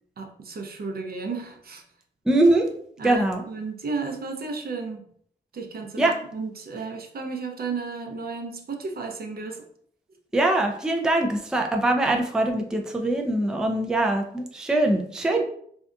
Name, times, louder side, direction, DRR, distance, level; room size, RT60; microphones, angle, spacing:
voice 1, 0.2-1.8 2.3-2.4 3.0-5.1 5.5-9.6, right 4 dB, 50° right, 3 dB, 0.5 m, -33 dB
voice 2, 2.3-2.7 3.0-3.4 6.0-6.2 10.3-15.4, right 2 dB, 5° right, 2 dB, 0.4 m, -22 dB
2.7 x 2.4 x 2.2 m, 0.64 s
cardioid pair, 55°, 20 cm